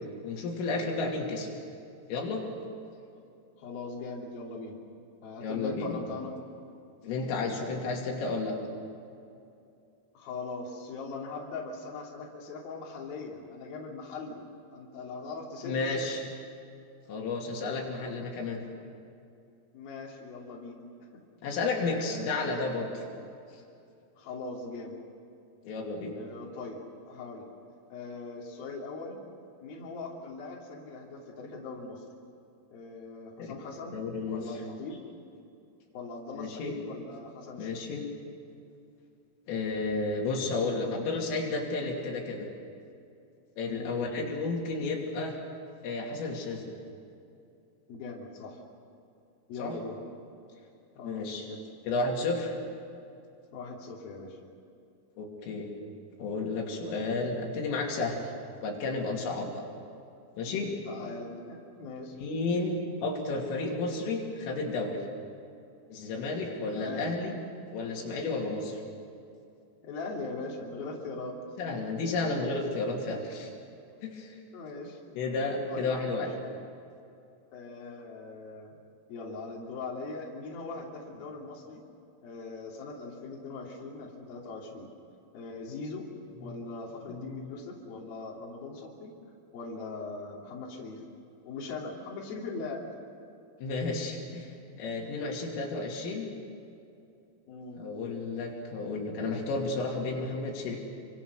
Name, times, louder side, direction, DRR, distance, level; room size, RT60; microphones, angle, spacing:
voice 1, 0.2-1.5 2.1-2.4 5.4-6.0 7.0-8.6 15.6-16.2 17.1-18.6 21.4-23.0 25.6-26.1 33.4-33.5 33.9-34.4 36.4-36.7 37.6-38.0 39.5-42.5 43.6-45.4 45.8-46.7 49.6-49.8 51.0-51.5 51.9-52.5 55.2-55.7 56.2-58.2 58.6-59.6 60.4-60.7 62.2-65.0 65.9-67.4 67.7-68.8 71.6-73.5 74.0-74.4 75.2-76.3 86.4-86.6 87.1-87.5 93.6-94.5 94.8-96.3 97.8-100.8, left 3 dB, 85° left, -1 dB, 5.4 m, -32 dB
voice 2, 3.6-4.8 5.2-6.3 10.1-14.4 14.7-16.1 19.7-20.8 21.4-21.6 21.9-22.5 24.2-25.0 26.1-27.5 27.9-29.2 29.6-32.0 32.7-35.0 35.9-38.0 43.7-43.9 47.9-48.6 49.5-50.0 51.0-51.6 53.5-54.4 60.5-62.2 66.7-67.0 69.8-71.4 74.5-75.1 75.7-75.9 77.5-78.8 79.1-81.8 82.2-84.9 85.3-86.1 86.4-89.1 89.5-91.0 91.4-92.8 97.5-97.8, left 3 dB, 50° left, -2 dB, 4.5 m, -40 dB
28.5 x 25.0 x 6.4 m, 2.6 s
omnidirectional pair, 5.7 m